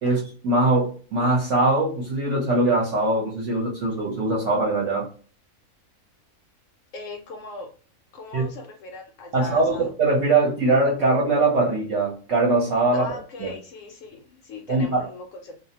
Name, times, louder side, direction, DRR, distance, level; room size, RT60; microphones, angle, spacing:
voice 1, 0.0-5.1 8.3-8.5 9.3-13.0 13.4-13.5 14.7-15.0, right 2 dB, 65° right, 1.0 m, -22 dB
voice 2, 6.9-7.7 8.1-9.9 12.9-15.5, left 3 dB, 70° left, 0.9 m, -39 dB
2.5 x 2.0 x 2.8 m
omnidirectional pair, 1.4 m